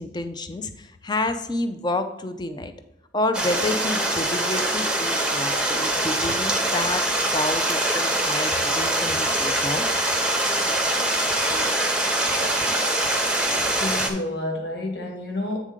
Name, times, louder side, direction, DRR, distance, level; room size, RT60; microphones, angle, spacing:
voice 1, 0.0-2.7 3.1-7.1 7.3-9.9, left 2 dB, 25° left, 8 dB, 0.5 m, -29 dB
Stream, 3.3-14.1, right 1 dB, 5° right, 0.8 m, -23 dB
voice 2, 13.8-15.6, left 2 dB, 60° left, 1 dB, 1.6 m, -29 dB
8.7 x 3.7 x 5.0 m, 0.92 s
head